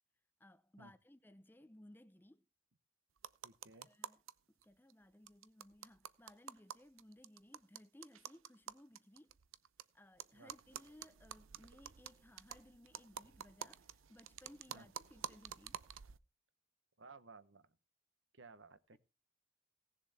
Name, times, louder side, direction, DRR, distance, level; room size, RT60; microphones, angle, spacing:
voice 1, 0.4-2.4 3.7-4.2 4.6-9.4 9.9-15.8, left 1 dB, 10° left, 0.5 m, -61 dB
sound 1, 3.2-4.3 4.6-4.7 4.9-5.0 5.3-9.8 10.2-16.2, right 9 dB, 85° right, 0.6 m, -50 dB
voice 2, 3.4-3.9 10.3-10.5 14.7-14.9 17.0-17.8 18.3-19.0, right 3 dB, 70° right, 1.0 m, -58 dB
17.5 x 7.1 x 4.3 m
head